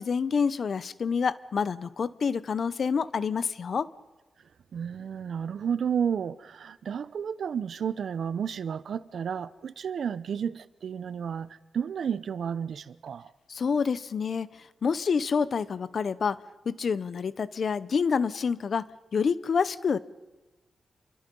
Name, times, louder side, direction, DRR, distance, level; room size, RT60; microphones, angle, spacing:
voice 1, 0.0-3.9 13.5-14.5 14.8-16.4 16.6-18.9 19.1-20.0, left 6 dB, 55° left, 0.8 m, -27 dB
voice 2, 4.7-13.3, right 7 dB, 70° right, 0.8 m, -32 dB
28.0 x 24.0 x 5.5 m
wide cardioid pair, 135°, 0 cm